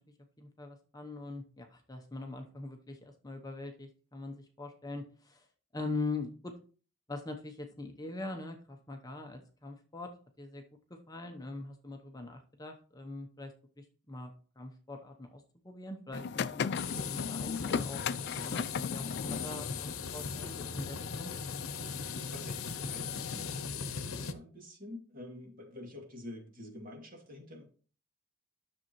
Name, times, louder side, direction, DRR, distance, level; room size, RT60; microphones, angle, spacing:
voice 1, 0.4-5.4 5.7-6.5 7.1-10.1 10.4-10.6 11.1-21.3, left 3 dB, 20° left, 4 dB, 0.8 m, -42 dB
sound 1, 16.1-23.6, left 6 dB, 55° left, 0.4 m, -38 dB
sound 2, 16.7-24.3, left 5 dB, 90° left, 0.7 m, -38 dB
voice 2, 22.0-27.6, left 1 dB, 40° right, 0 dB, 2.4 m, -48 dB
10.5 x 6.8 x 3.0 m, 0.40 s
head